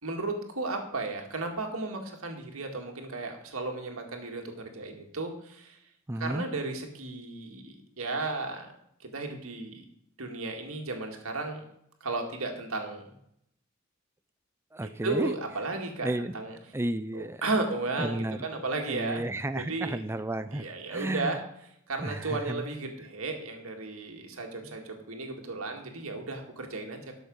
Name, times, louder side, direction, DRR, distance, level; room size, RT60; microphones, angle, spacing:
voice 1, 0.0-5.8 6.2-8.7 9.0-9.8 10.2-11.6 12.0-13.1 14.8-16.6 17.1-19.2 19.6-20.0 20.5-21.4 21.9-27.2, right 3 dB, 85° right, 3 dB, 2.0 m, -34 dB
voice 2, 6.1-6.5 14.7-15.3 16.0-16.3 16.7-17.4 18.0-18.4 18.9-20.6 20.9-21.4 22.0-22.7 24.6-24.8, right 1 dB, 10° right, 11 dB, 0.4 m, -32 dB
13.0 x 6.3 x 5.3 m, 0.74 s
head